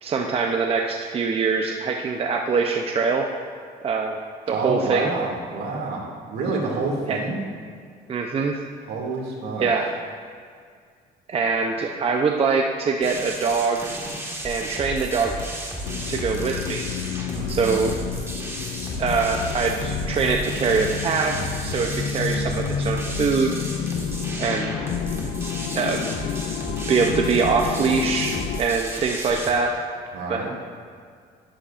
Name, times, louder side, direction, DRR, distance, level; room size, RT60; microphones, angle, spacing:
voice 1, 0.0-3.2 3.8-4.2 4.5-5.1 7.1-7.2 8.1-8.6 9.6-9.9 11.3-14.0 14.4-15.3 16.1-16.8 17.5-17.9 19.0-21.3 21.6-23.5 24.4-24.7 25.7-26.1 26.9-29.7 30.3-30.4, right 5 dB, 35° right, 2 dB, 0.6 m, -23 dB
voice 2, 4.5-7.5 8.9-9.7 17.3-17.9 30.1-30.5, right 3 dB, 70° right, -2 dB, 2.3 m, -28 dB
sound 1, 13.0-29.5, right 1 dB, 15° right, 1.5 m, -34 dB
sound 2, 15.8-28.6, left 8 dB, 65° left, 0.5 m, -30 dB
11.5 x 11.0 x 2.5 m, 2.1 s
cardioid pair, 110°, 17 cm